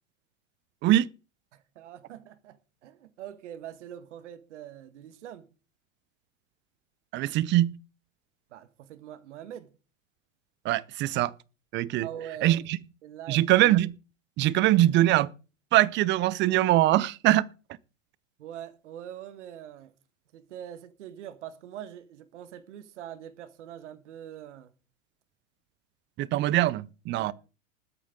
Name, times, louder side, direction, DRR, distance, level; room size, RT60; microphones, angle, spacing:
voice 1, 1.5-5.5 8.5-9.7 12.0-12.6 13.0-13.4 18.4-19.9 20.3-24.7 27.2-27.3, right 10 dB, 60° right, 1.5 m, -43 dB
voice 2, 7.1-7.7 10.6-11.3 11.7-12.1 12.4-12.8 13.3-13.9 14.4-15.3 15.7-17.5 26.2-27.3, right 15 dB, 30° right, 0.7 m, -22 dB
20.0 x 8.7 x 3.8 m
figure-of-eight pair, 95°, 39 cm